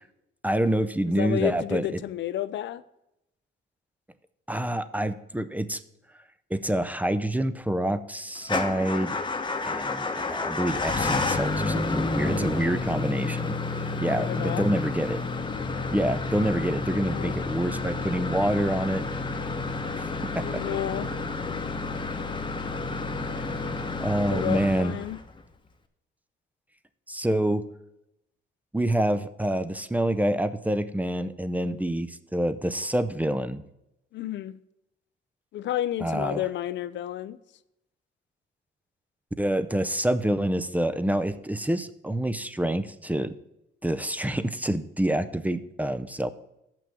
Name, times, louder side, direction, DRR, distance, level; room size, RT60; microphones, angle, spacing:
voice 1, 0.4-2.0 4.5-5.8 6.5-9.2 9.7-13.6 14.0-15.2 15.9-19.0 20.0-20.6 23.2-23.3 24.0-25.0 27.1-27.6 28.7-33.6 36.0-36.4 39.4-43.3 43.8-46.3, right 1 dB, 10° right, 0.5 m, -27 dB
voice 2, 1.1-2.8 14.2-14.7 16.9-17.4 20.4-21.1 24.2-25.2 34.1-34.6 35.5-37.4, left 12 dB, 65° left, 0.4 m, -31 dB
Motor vehicle (road) / Engine starting / Idling, 8.4-25.4, left 3 dB, 25° left, 0.9 m, -30 dB
7.0 x 6.0 x 7.5 m
cardioid pair, 90°, 20 cm